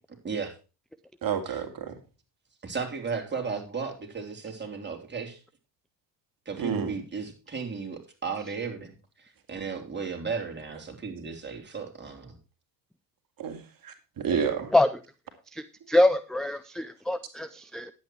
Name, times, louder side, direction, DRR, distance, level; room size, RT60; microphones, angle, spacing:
voice 1, 1.2-1.9 6.6-6.9 13.4-14.7, right 7 dB, 45° right, 2.5 m, -30 dB
voice 2, 2.6-5.4 6.5-8.9 9.2-12.3 14.3-14.6, right 5 dB, 20° right, 3.5 m, -35 dB
voice 3, 15.5-17.9, left 1 dB, ahead, 0.5 m, -24 dB
10.5 x 8.6 x 4.5 m
supercardioid pair, 80°, 47 cm